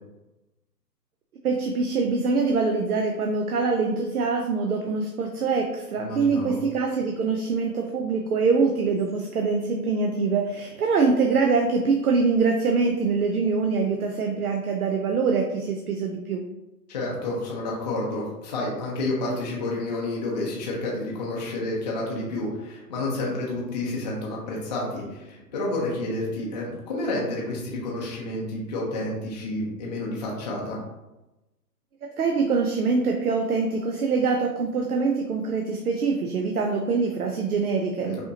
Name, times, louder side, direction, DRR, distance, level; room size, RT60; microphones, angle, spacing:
voice 1, 1.4-16.5 32.0-38.2, right 4 dB, 60° right, 3 dB, 0.7 m, -24 dB
voice 2, 6.0-6.6 16.9-30.8 38.0-38.2, left 2 dB, 25° left, -4 dB, 0.6 m, -30 dB
5.4 x 2.9 x 2.7 m, 1.0 s
figure-of-eight pair, 135°, 50 cm